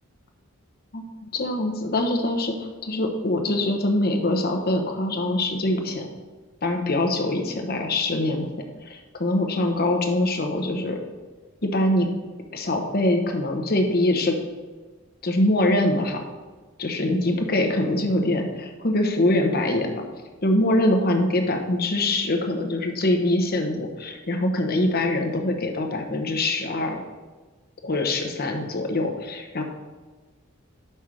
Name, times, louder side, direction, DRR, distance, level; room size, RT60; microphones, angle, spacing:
voice 1, 1.3-6.1 6.6-8.5 8.8-11.0 11.6-12.1 12.5-14.4 15.2-16.2 16.8-19.9 20.4-27.0 27.8-29.6, left 1 dB, 45° left, 3 dB, 1.0 m, -23 dB
6.0 x 5.5 x 5.0 m, 1.3 s
head